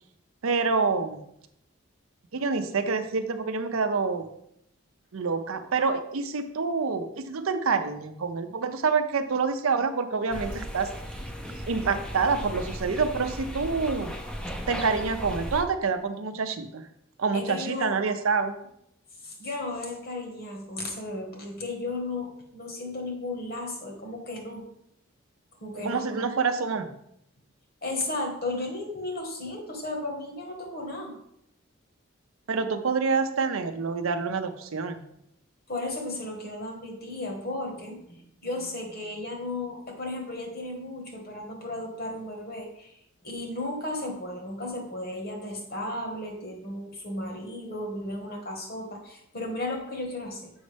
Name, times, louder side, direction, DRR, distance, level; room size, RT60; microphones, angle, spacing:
voice 1, 0.4-1.2 2.3-4.3 5.1-10.9 11.7-14.1 14.7-16.9 17.2-18.6 25.8-26.9 32.5-35.0, right 4 dB, 80° right, 8 dB, 0.6 m, -27 dB
sound 1, 10.3-15.6, equal, 5° left, 0.5 m, -36 dB
voice 2, 17.3-17.9 19.2-24.6 25.6-26.3 27.8-31.1 35.7-42.9 43.2-50.5, left 2 dB, 45° left, 2 dB, 1.4 m, -34 dB
7.0 x 5.3 x 3.4 m, 0.75 s
head